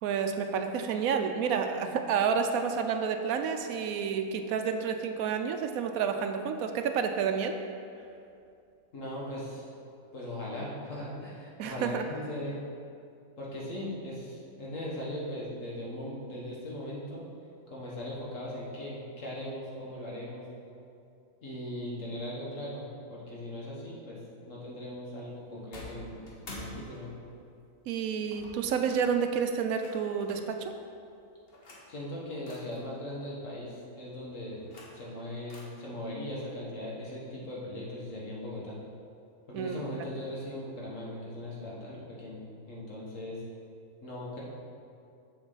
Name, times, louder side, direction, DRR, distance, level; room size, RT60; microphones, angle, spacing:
voice 1, 0.0-7.6 11.6-12.1 27.9-30.8 39.5-39.8, right 6 dB, 75° right, 6 dB, 1.0 m, -30 dB
voice 2, 8.9-9.7 10.1-12.6 13.4-17.2 17.7-20.5 21.4-24.2 24.4-26.2 26.5-27.1 31.9-34.6 34.9-38.8 39.5-43.4 44.0-44.4, left 1 dB, 60° left, -5 dB, 1.8 m, -39 dB
sound 1, 25.7-27.4 28.3-29.1 29.8-30.5 31.5-31.9 32.5-32.8 34.4-35.1 35.5-35.6, left 2 dB, 45° left, 1.2 m, -48 dB
7.0 x 6.5 x 3.9 m, 2.5 s
omnidirectional pair, 1.5 m